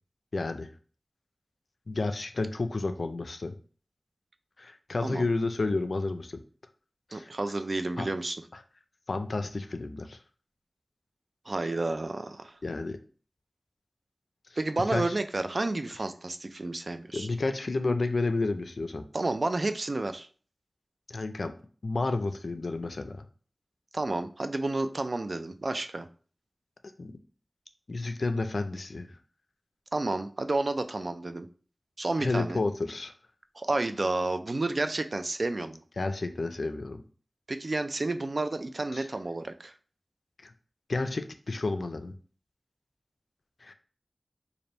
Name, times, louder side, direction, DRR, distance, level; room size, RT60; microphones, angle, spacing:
voice 1, 0.3-0.7 1.9-3.5 4.6-6.4 7.1-7.3 8.0-8.1 9.1-10.2 12.6-13.0 14.9-15.2 17.1-19.0 21.1-21.5 21.8-23.2 27.0-27.1 27.9-29.1 32.2-33.1 36.0-37.0 38.9-39.1 40.4-40.5 40.9-42.1 43.6-43.7, left 3 dB, 75° left, 8 dB, 0.4 m, -31 dB
voice 2, 7.1-8.4 11.5-12.6 14.6-17.3 19.1-20.3 23.9-26.1 29.9-31.5 32.0-32.6 33.6-35.8 37.5-39.7, right 2 dB, 55° right, 9 dB, 0.3 m, -30 dB
3.3 x 2.5 x 3.9 m, 0.41 s
wide cardioid pair, 75°, 0 cm